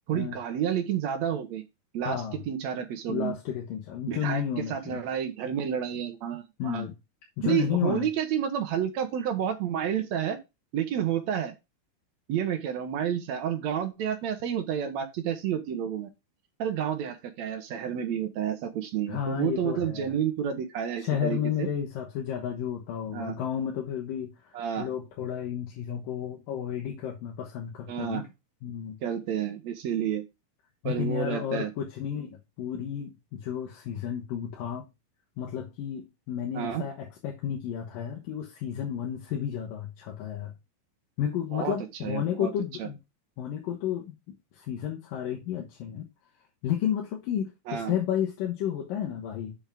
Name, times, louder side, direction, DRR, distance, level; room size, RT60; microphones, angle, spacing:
voice 1, 0.1-1.6 1.9-3.3 4.1-4.4 4.7-6.9 7.4-10.4 10.7-11.5 12.3-16.1 16.6-21.7 23.1-23.4 24.5-24.9 27.9-28.2 29.0-30.2 30.8-31.7 36.5-36.9 41.5-41.7 42.0-42.5 42.8-42.9 47.7-47.9, right 9 dB, 65° right, 1.9 m, -30 dB
voice 2, 2.0-2.4 3.1-5.0 6.6-6.9 7.4-8.1 19.1-20.1 21.0-24.3 24.8-28.3 28.6-29.0 30.8-34.9 35.4-40.5 41.2-43.0 43.4-46.1 46.6-49.6, left 9 dB, 75° left, 2.9 m, -32 dB
7.5 x 6.5 x 3.5 m
omnidirectional pair, 4.1 m